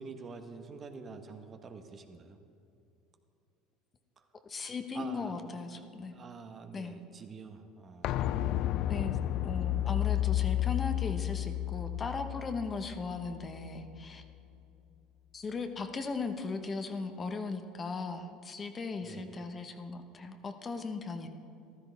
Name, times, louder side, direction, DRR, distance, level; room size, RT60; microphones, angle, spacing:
voice 1, 0.0-2.4 4.2-4.3 4.9-5.4 5.7-5.8 6.1-8.3 9.7-9.8 19.0-19.4, right 4 dB, 35° right, 7 dB, 1.1 m, -47 dB
voice 2, 4.4-6.1 6.7-7.0 8.9-9.2 9.4-14.2 15.3-21.3, left 4 dB, 30° left, 7 dB, 1.0 m, -37 dB
sound 1, 8.0-13.7 14.0-14.1, left 13 dB, 60° left, 0.4 m, -31 dB
14.5 x 13.0 x 3.5 m, 2.7 s
hypercardioid pair, 75°, 0 cm